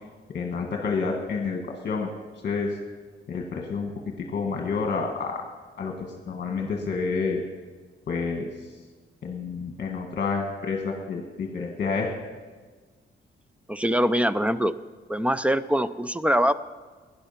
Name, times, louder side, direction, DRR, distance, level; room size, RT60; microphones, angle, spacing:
voice 1, 0.3-2.1 2.4-2.7 3.3-3.9 4.2-5.4 5.8-7.4 8.1-8.5 9.2-12.3, left 4 dB, 45° left, 1 dB, 1.5 m, -29 dB
voice 2, 13.7-14.7 15.1-16.5, equal, 5° right, 14 dB, 0.3 m, -23 dB
17.5 x 10.0 x 5.7 m, 1.4 s
wide cardioid pair, 170°, 19 cm